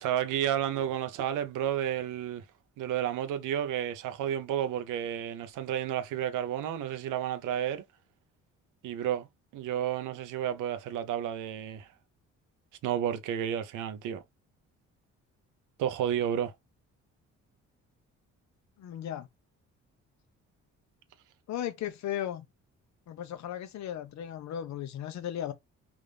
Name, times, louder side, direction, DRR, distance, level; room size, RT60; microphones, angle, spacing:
voice 1, 0.0-2.4 2.8-7.8 8.8-9.3 9.5-11.9 12.8-14.2 15.8-16.5, right 10 dB, 90° right, 0.7 m, -31 dB
voice 2, 18.8-19.3 21.5-22.5 23.1-25.5, left 10 dB, 65° left, 0.7 m, -36 dB
3.5 x 2.6 x 3.2 m
cardioid pair, 90°, 30 cm